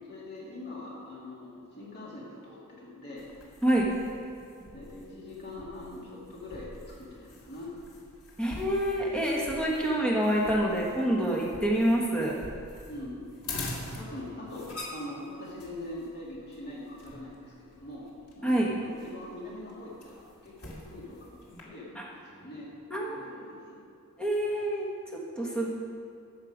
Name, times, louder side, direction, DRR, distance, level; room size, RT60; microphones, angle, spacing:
voice 1, 0.1-3.3 4.7-7.8 12.9-13.3 14.0-22.7 23.1-23.8, left 1 dB, 45° left, -5 dB, 2.4 m, -43 dB
sound 1, 3.2-21.6, left 2 dB, 90° left, 2.3 m, -45 dB
voice 2, 8.4-12.4 18.4-18.7 21.9-22.1 22.9-23.2 24.2-25.7, right 1 dB, 5° left, -3 dB, 1.3 m, -27 dB
13.0 x 7.6 x 5.0 m, 2.4 s
head